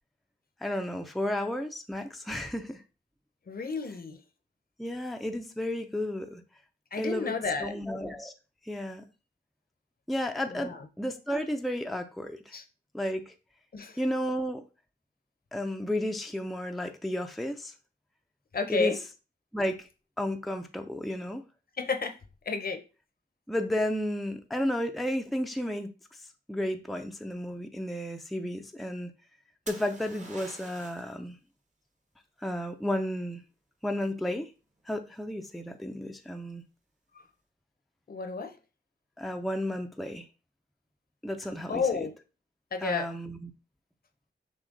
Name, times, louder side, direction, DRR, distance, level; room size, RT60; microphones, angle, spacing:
voice 1, 0.6-2.8 4.8-6.4 7.0-7.3 7.6-8.3 8.6-9.0 10.1-12.4 12.9-13.3 14.0-14.6 15.5-17.7 18.7-18.9 19.5-19.9 20.2-21.4 23.5-25.9 26.5-29.1 29.7-31.4 32.4-33.4 33.8-34.5 34.9-36.6 39.2-40.3 41.2-42.1 42.8-43.5, left 1 dB, ahead, 0.4 m, -32 dB
voice 2, 3.5-4.2 6.9-7.7 10.5-10.8 12.5-12.6 13.7-14.0 18.5-19.0 21.8-22.2 22.5-22.8 38.1-38.5 41.7-42.1 42.7-43.1, left 4 dB, 50° left, 0.7 m, -31 dB
sound 1, 29.7-31.1 34.8-35.2, right 2 dB, 40° right, 1.1 m, -46 dB
6.1 x 2.2 x 3.8 m
wide cardioid pair, 80°, 19 cm